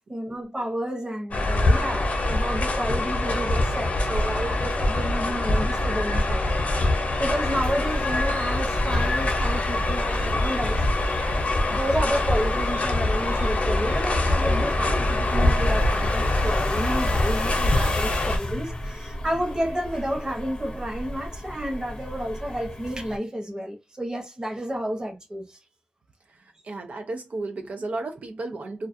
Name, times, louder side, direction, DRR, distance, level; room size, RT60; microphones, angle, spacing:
voice 1, 0.1-10.8 11.7-25.6, equal, 30° right, 0.8 m, -31 dB
sound 1, 1.3-18.4, left 2 dB, 75° left, 0.6 m, -24 dB
sound 2, 7.5-23.2, equal, 35° left, 0.6 m, -33 dB
voice 2, 26.3-28.9, right 2 dB, 85° right, 0.4 m, -34 dB
2.3 x 2.3 x 2.5 m
wide cardioid pair, 100°, 2 cm